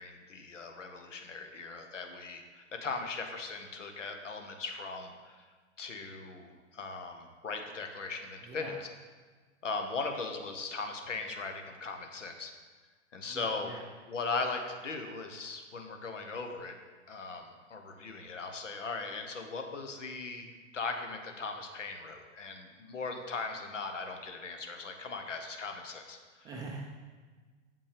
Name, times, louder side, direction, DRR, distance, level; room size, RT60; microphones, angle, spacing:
voice 1, 0.0-5.4 5.8-8.9 9.6-12.5 13.1-13.7 14.1-16.7 17.1-20.5 20.7-26.5, left 4 dB, 80° left, 5 dB, 1.0 m, -39 dB
voice 2, 13.3-13.8 26.4-26.8, right 3 dB, 10° right, 0 dB, 0.3 m, -43 dB
7.2 x 5.3 x 3.4 m, 1.4 s
figure-of-eight pair, 105°, 36 cm